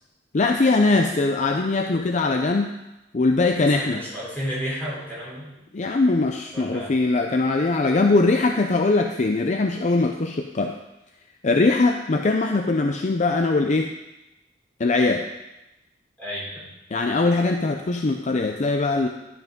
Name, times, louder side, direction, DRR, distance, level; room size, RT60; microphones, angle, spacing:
voice 1, 0.3-2.7 3.1-4.0 5.7-10.7 11.4-13.9 14.8-15.2 16.9-19.1, left 3 dB, 40° left, 4 dB, 0.5 m, -21 dB
voice 2, 3.7-5.5 6.5-7.0 16.2-16.7, equal, 10° left, -6 dB, 3.7 m, -32 dB
11.5 x 6.0 x 5.2 m, 0.97 s
head